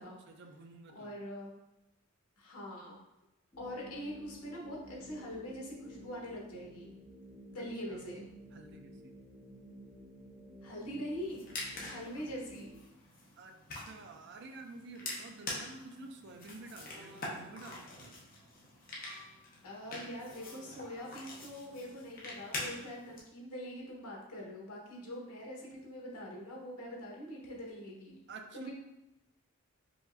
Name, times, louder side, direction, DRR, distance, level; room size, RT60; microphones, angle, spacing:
voice 1, 0.3-1.1 7.9-8.0 8.5-9.2 13.4-18.2 28.3-28.7, right 3 dB, 50° right, 5 dB, 0.4 m, -50 dB
voice 2, 0.9-1.5 2.4-3.0 3.6-6.9 7.5-8.2 10.6-11.5 11.8-12.8 19.6-28.2 28.5-28.7, equal, 85° left, -2 dB, 1.1 m, -43 dB
sound 1, 3.5-12.8, equal, 25° left, 1.2 m, -53 dB
sound 2, 11.2-23.2, left 2 dB, 40° left, 0.8 m, -45 dB
sound 3, 16.8-17.9 18.9-19.4 20.2-21.6 22.5-22.7, equal, 20° right, 0.9 m, -58 dB
4.8 x 3.0 x 2.6 m, 0.93 s
head